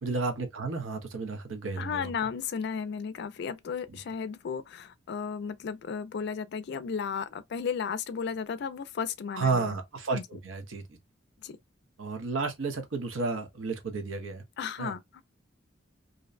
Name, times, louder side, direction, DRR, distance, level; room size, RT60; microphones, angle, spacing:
voice 1, 0.0-2.1 3.9-4.0 9.3-11.0 12.0-14.4 14.8-14.9, right 4 dB, 85° right, 0.7 m, -32 dB
voice 2, 1.8-9.7 10.1-10.2 11.4-11.6 14.6-15.0, left 6 dB, 60° left, 0.3 m, -34 dB
2.5 x 2.1 x 2.3 m
head